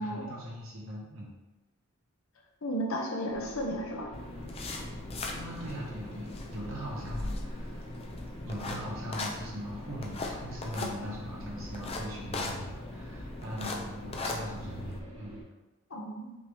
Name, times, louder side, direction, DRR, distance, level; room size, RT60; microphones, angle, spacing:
voice 1, 0.0-1.3 5.3-7.8 8.4-15.4, equal, 65° right, -4 dB, 1.3 m, -40 dB
voice 2, 2.6-4.1 15.9-16.3, equal, 65° left, 1 dB, 0.8 m, -33 dB
sound 1, 3.3-15.4, right 1 dB, 85° right, 1.4 m, -49 dB
sound 2, 4.1-15.0, left 2 dB, 25° left, 0.4 m, -39 dB
5.7 x 2.8 x 3.3 m, 1.1 s
head